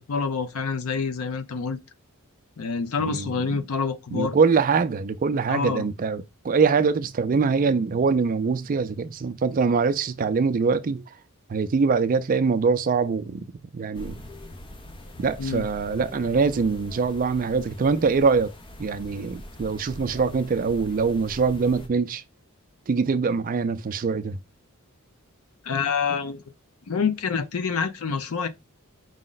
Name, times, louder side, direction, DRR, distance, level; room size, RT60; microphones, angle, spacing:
voice 1, 0.0-1.8 2.6-4.4 5.5-5.9 15.4-15.7 25.6-26.4 26.9-28.5, left 5 dB, 75° left, 0.6 m, -27 dB
voice 2, 3.0-3.6 4.1-11.0 11.5-13.5 13.7-14.2 15.2-18.5 18.8-22.2 22.9-24.4, right 5 dB, 40° right, 0.4 m, -23 dB
sound 1, 13.9-21.9, left 1 dB, 25° left, 0.5 m, -43 dB
4.9 x 2.1 x 3.8 m
head